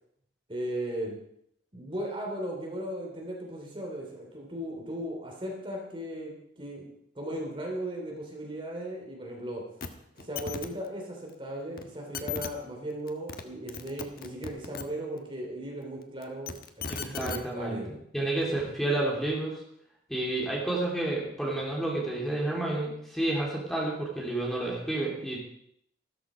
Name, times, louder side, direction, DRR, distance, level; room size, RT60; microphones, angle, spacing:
voice 1, 0.5-1.2 1.7-6.9 7.1-9.6 10.2-17.9, right 1 dB, 30° right, 0 dB, 3.2 m, -37 dB
sound 1, 9.8-9.9 10.2-10.7 11.8-11.9 12.1-12.5 13.1-13.4 13.7-14.8 16.2-17.4 18.4-18.5, left 5 dB, 55° left, 1.3 m, -36 dB
voice 2, 16.9-17.8 18.1-19.6 20.1-25.4, right 2 dB, ahead, -3 dB, 3.2 m, -30 dB
13.5 x 13.5 x 5.1 m, 0.70 s
head